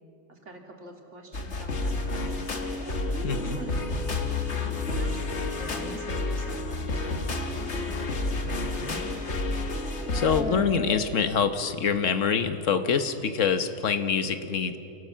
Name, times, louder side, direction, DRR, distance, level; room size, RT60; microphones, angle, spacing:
voice 1, 0.3-4.2 4.9-9.2, right 2 dB, 70° right, 2 dB, 2.9 m, -45 dB
sound 1, 1.3-10.4, left 2 dB, 65° left, 1.8 m, -30 dB
sound 2, 3.0-3.7 4.4-4.9 5.5-6.0 7.3-7.4 8.5-9.1 9.4-9.5 10.0-11.0, right 1 dB, 5° right, 1.4 m, -39 dB
voice 2, 3.2-3.6 10.1-14.8, left 6 dB, 85° left, 9 dB, 1.5 m, -25 dB
27.5 x 18.0 x 7.4 m, 3.0 s
omnidirectional pair, 1.3 m